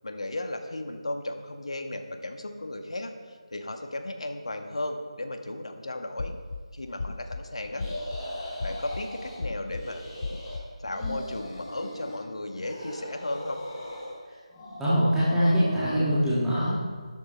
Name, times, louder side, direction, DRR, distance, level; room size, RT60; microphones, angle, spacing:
voice 1, 0.0-6.3 6.7-7.9 8.6-10.0 10.8-13.6, left 1 dB, 60° left, 5 dB, 1.5 m, -35 dB
sound 1, 6.2-6.6 7.0-7.4 7.8-8.2 8.6-9.0 9.4-9.8 10.2-10.6 11.0-11.2, left 3 dB, 45° left, 0.7 m, -34 dB
sound 2, 7.7-9.4 9.7-10.6 10.8-12.2 12.6-14.2 14.5-16.1, equal, 20° left, 3.7 m, -37 dB
voice 2, 14.8-16.9, equal, 5° right, -13 dB, 1.7 m, -24 dB
13.0 x 11.0 x 4.4 m, 1.5 s
figure-of-eight pair, 160°, 4 cm